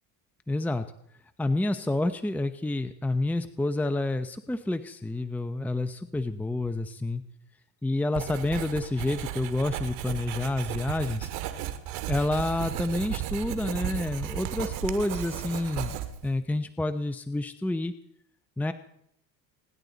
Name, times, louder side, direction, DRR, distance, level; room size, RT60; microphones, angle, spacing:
voice 1, 0.5-0.9 1.4-7.2 7.8-11.3 12.1-16.0 16.2-17.9 18.6-18.7, left 2 dB, 5° left, 9 dB, 0.8 m, -29 dB
Writing, 8.1-16.3, right 11 dB, 80° right, 2.1 m, -35 dB
27.5 x 11.0 x 4.0 m, 0.72 s
supercardioid pair, 100°, 43 cm